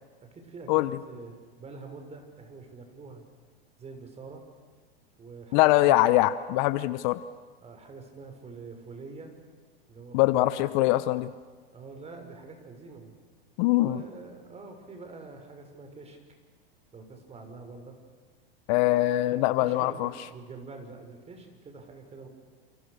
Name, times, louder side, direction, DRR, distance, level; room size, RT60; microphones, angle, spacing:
voice 1, 0.2-3.2 3.8-4.4 5.2-6.2 7.6-9.3 9.9-10.9 11.7-13.1 13.8-16.2 16.9-18.0 19.6-22.3, right 4 dB, 20° right, 5 dB, 6.3 m, -45 dB
voice 2, 5.5-7.2 10.1-11.3 13.6-14.0 18.7-20.1, left 16 dB, 50° left, 15 dB, 1.0 m, -23 dB
29.5 x 28.5 x 6.8 m, 1.4 s
hypercardioid pair, 110°, 30 cm